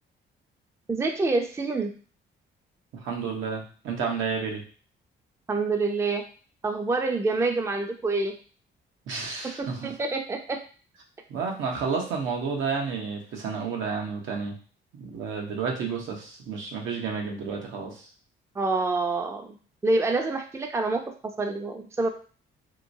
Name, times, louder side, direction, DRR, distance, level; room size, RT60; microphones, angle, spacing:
voice 1, 0.9-1.9 5.5-6.2 6.6-8.4 9.6-10.6 18.6-19.5 19.8-22.1, right 3 dB, 15° right, 4 dB, 0.4 m, -27 dB
voice 2, 3.0-4.6 9.1-9.9 11.3-14.5 15.0-18.1, right 5 dB, 80° right, 0 dB, 0.9 m, -31 dB
3.0 x 2.9 x 2.6 m, 0.39 s
cardioid pair, 90°, 20 cm